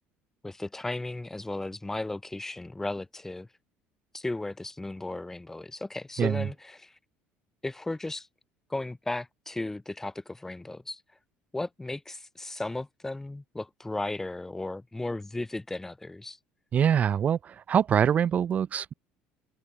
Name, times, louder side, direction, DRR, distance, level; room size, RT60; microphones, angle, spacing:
voice 1, 0.4-3.5 4.1-7.0 7.6-8.3 8.7-11.0 11.5-16.4, left 2 dB, 10° left, 1.3 m, -35 dB
voice 2, 16.7-18.9, right 8 dB, 35° right, 0.3 m, -24 dB
cardioid pair, 115°, 4 cm